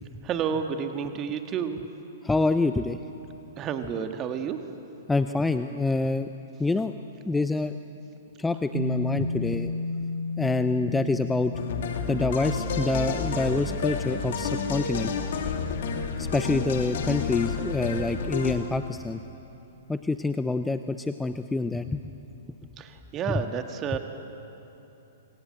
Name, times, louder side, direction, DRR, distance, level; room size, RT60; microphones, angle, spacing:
voice 1, 0.2-1.8 3.6-4.6 22.8-24.0, right 7 dB, 25° right, 6 dB, 1.7 m, -30 dB
voice 2, 2.2-3.0 5.1-6.3 6.6-6.9 7.3-7.8 8.4-9.7 10.4-11.5 12.1-15.1 16.2-19.2 19.9-22.1, left 3 dB, 5° left, 10 dB, 0.7 m, -26 dB
sound 1, 8.7-18.2, left 2 dB, 55° right, 1.5 m, -36 dB
sound 2, 11.5-18.5, left 5 dB, 55° left, 2.8 m, -30 dB
26.0 x 26.0 x 7.7 m, 2.9 s
figure-of-eight pair, 110°, 0 cm